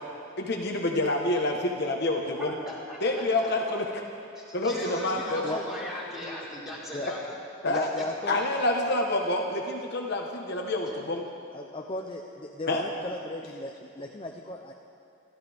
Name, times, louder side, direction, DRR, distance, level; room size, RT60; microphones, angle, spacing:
voice 1, 0.4-2.6 3.0-3.9 4.5-5.4 7.0-7.1 7.6-7.9 8.3-11.3 12.7-12.8, left 2 dB, 55° left, 1 dB, 1.3 m, -27 dB
voice 2, 2.6-3.0 3.7-3.8 4.3-7.3 7.7-8.6 10.8-10.9, equal, ahead, -8 dB, 4.6 m, -38 dB
voice 3, 5.2-5.6 6.9-7.1 7.7-8.4 11.5-14.7, left 2 dB, 25° left, 1 dB, 0.7 m, -36 dB
28.5 x 13.5 x 3.6 m, 2.6 s
head